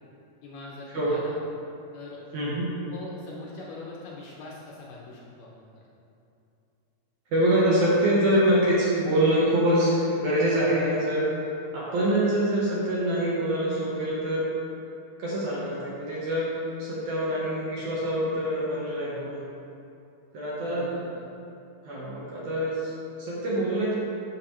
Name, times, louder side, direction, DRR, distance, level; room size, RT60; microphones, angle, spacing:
voice 1, 0.4-1.4 1.9-2.2 2.9-5.8 20.6-21.3, left 3 dB, 75° left, -4 dB, 2.2 m, -42 dB
voice 2, 2.3-2.7 7.3-11.3 11.7-14.5 15.2-19.4 20.3-20.9 21.9-22.9 23.2-23.9, right 1 dB, 65° right, -7 dB, 2.1 m, -25 dB
12.0 x 5.7 x 3.1 m, 2.7 s
omnidirectional pair, 4.5 m